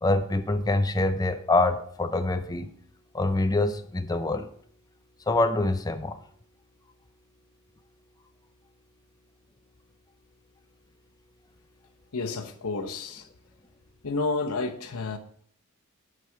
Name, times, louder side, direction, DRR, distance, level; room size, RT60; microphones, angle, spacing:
voice 1, 0.0-2.7 3.1-4.5 5.3-6.2, left 2 dB, 15° left, 9 dB, 0.5 m, -25 dB
voice 2, 12.1-13.3 14.0-15.2, left 3 dB, 85° left, 4 dB, 0.8 m, -30 dB
8.0 x 5.0 x 5.6 m, 0.63 s
head